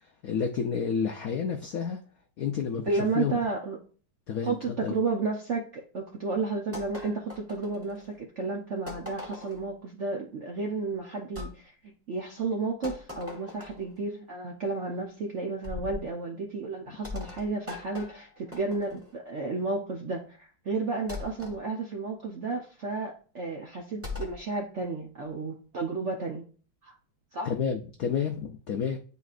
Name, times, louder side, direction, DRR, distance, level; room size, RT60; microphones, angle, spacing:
voice 1, 0.0-2.0 2.4-3.3 4.3-5.0 27.4-29.0, left 7 dB, 80° left, 0.8 m, -30 dB
voice 2, 2.9-3.8 4.4-11.7 12.1-26.4 26.8-26.9 27.3-27.5, right 3 dB, 65° right, 0.7 m, -32 dB
sound 1, 6.7-8.1 8.9-9.7 11.3-11.5 12.8-13.9 15.6-16.1 17.0-19.1 21.1-21.6 24.0-24.4, left 4 dB, 10° right, 1.0 m, -40 dB
9.4 x 4.0 x 2.5 m
omnidirectional pair, 2.2 m